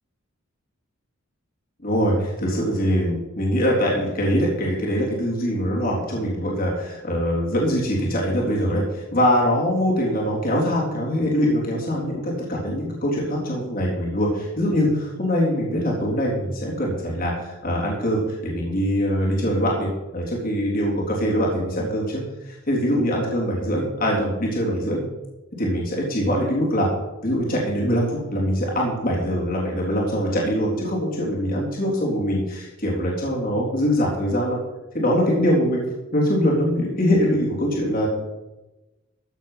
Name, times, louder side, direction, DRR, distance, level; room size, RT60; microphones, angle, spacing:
voice 1, 1.8-25.0 25.6-26.9 27.2-34.6 34.9-35.9 36.1-38.1, equal, 40° left, -4 dB, 3.6 m, -23 dB
14.5 x 8.3 x 5.8 m, 1.0 s
head